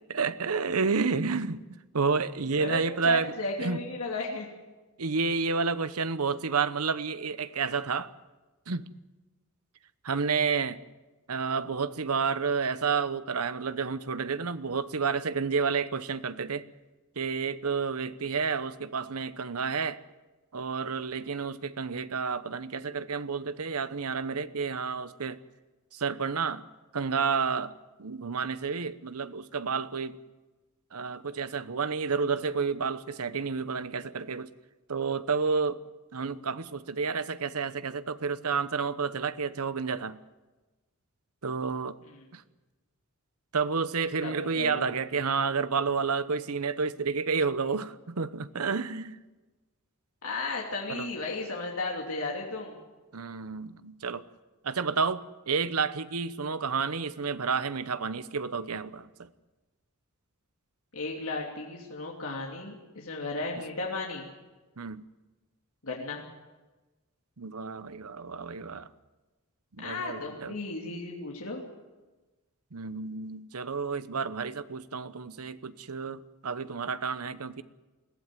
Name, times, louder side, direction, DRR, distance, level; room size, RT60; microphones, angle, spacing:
voice 1, 0.0-1.6 1.9-3.3 3.6-3.8 5.0-8.1 8.7-8.9 10.0-10.8 11.3-16.6 17.2-20.0 20.5-25.4 25.9-26.6 26.9-27.7 28.0-30.2 30.9-34.5 34.9-35.8 36.1-40.2 41.4-42.0 42.3-42.4 43.5-49.2 50.9-51.1 53.1-54.2 54.6-59.3 64.8-65.0 67.4-68.9 69.8-70.6 72.7-77.6, right 5 dB, 85° right, 14 dB, 1.0 m, -30 dB
voice 2, 2.6-4.5 44.2-44.9 50.2-52.8 60.9-64.2 65.8-66.2 69.8-71.6, left 3 dB, 70° left, -2 dB, 2.9 m, -35 dB
21.5 x 15.5 x 9.3 m, 1.2 s
head